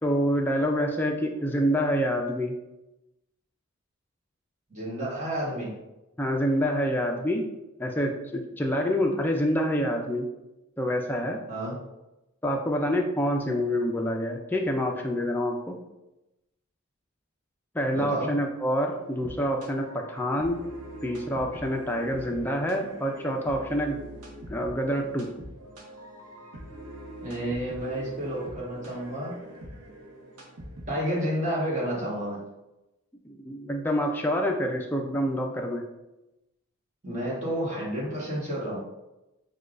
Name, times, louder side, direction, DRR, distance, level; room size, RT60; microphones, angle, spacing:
voice 1, 0.0-2.6 6.2-7.4 7.8-10.3 10.8-11.4 12.4-15.8 17.7-20.7 21.0-24.0 24.5-25.3 33.2-35.9, equal, 10° left, 1 dB, 0.4 m, -27 dB
voice 2, 4.7-5.7 11.5-11.7 17.9-18.3 27.2-29.4 30.9-32.4 37.0-38.8, equal, 35° right, -6 dB, 1.3 m, -30 dB
sound 1, 19.0-31.3, right 1 dB, 90° right, 0.9 m, -43 dB
6.5 x 2.3 x 2.5 m, 0.97 s
head